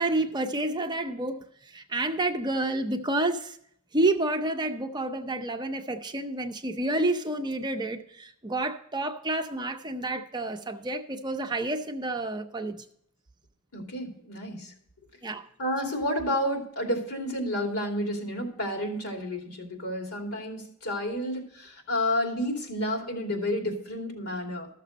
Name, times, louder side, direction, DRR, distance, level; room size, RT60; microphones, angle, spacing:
voice 1, 0.0-3.6 3.9-12.8 15.2-15.5, right 2 dB, 20° right, 0.6 m, -29 dB
voice 2, 13.7-14.7 15.6-24.7, left 1 dB, 80° left, 2.7 m, -30 dB
13.5 x 6.7 x 5.1 m
head